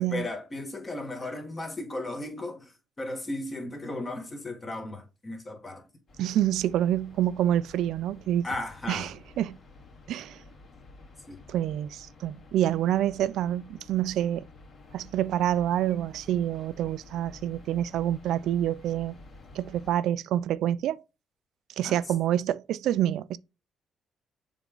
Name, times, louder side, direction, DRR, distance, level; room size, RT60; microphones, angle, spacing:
voice 1, 0.0-5.9 8.4-9.1 11.3-11.4 21.8-22.0, left 2 dB, 30° left, 2.0 m, -36 dB
sound 1, 6.1-19.9, left 2 dB, 55° left, 2.7 m, -51 dB
voice 2, 6.2-8.5 8.9-9.1 9.4-9.6 10.1-10.4 11.5-14.4 14.9-19.1 19.5-21.0 21.8-23.4, right 11 dB, 80° right, 0.3 m, -27 dB
7.1 x 3.6 x 3.8 m
cardioid pair, 90°, 0 cm